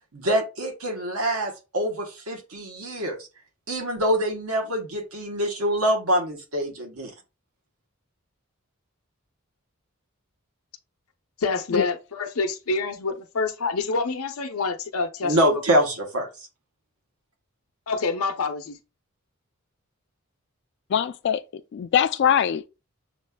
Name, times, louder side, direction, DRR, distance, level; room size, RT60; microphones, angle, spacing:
voice 1, 0.1-3.2 3.7-7.1 15.2-16.3, right 1 dB, 80° right, 1.1 m, -25 dB
voice 2, 11.4-15.5 17.9-18.8, left 4 dB, 80° left, 0.7 m, -27 dB
voice 3, 20.9-21.4 21.7-22.7, left 9 dB, 55° left, 0.3 m, -22 dB
7.1 x 2.4 x 2.2 m
head